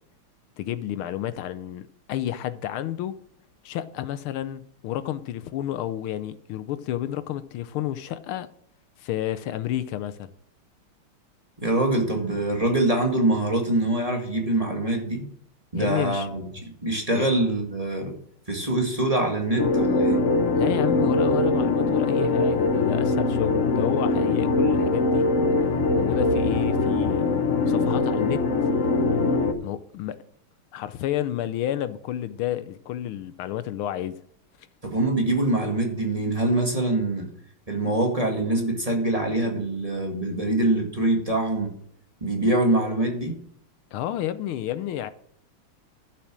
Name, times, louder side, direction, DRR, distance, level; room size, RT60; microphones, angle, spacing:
voice 1, 0.6-3.2 3.6-8.5 9.0-10.3 15.8-16.3 17.1-17.3 20.6-25.3 26.0-27.4 27.7-28.4 29.6-30.2 30.7-34.2 43.9-45.1, left 12 dB, 80° left, 1.5 m, -30 dB
voice 2, 11.6-15.3 15.7-18.2 18.5-20.2 34.8-37.3 37.7-41.7 42.2-43.4, right 2 dB, 15° right, 1.9 m, -24 dB
sound 1, 19.6-29.5, left 3 dB, 45° left, 1.2 m, -22 dB
12.0 x 6.8 x 6.2 m
omnidirectional pair, 2.4 m